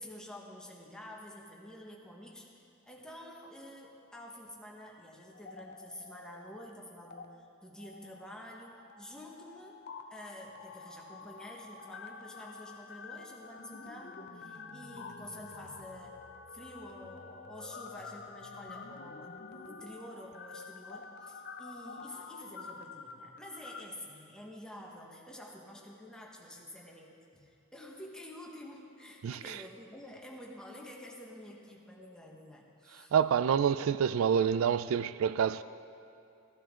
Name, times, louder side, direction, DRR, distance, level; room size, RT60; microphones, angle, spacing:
voice 1, 0.0-9.8 10.1-16.2 16.5-33.1, left 1 dB, 5° left, 1.4 m, -49 dB
sound 1, 5.3-6.7 7.0-7.2 7.8-23.8, left 4 dB, 55° left, 0.7 m, -48 dB
voice 2, 29.2-29.6 33.1-35.6, right 7 dB, 85° right, 0.3 m, -27 dB
14.5 x 14.0 x 3.8 m
head